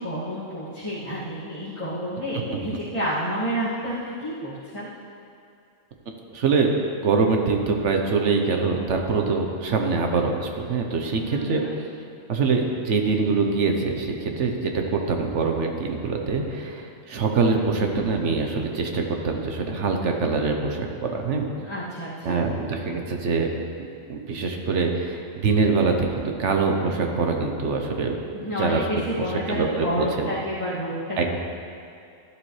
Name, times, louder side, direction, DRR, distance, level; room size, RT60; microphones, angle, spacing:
voice 1, 0.0-4.9 11.2-11.7 21.6-22.4 28.3-31.3, equal, 25° left, -12 dB, 2.2 m, -29 dB
voice 2, 6.1-6.7 7.0-11.6 12.3-21.5 22.2-23.5 23.8-28.2 28.6-29.0 29.5-30.3 31.2-31.3, right 4 dB, 65° right, 3 dB, 1.3 m, -24 dB
13.0 x 11.5 x 3.3 m, 2.4 s
omnidirectional pair, 1.4 m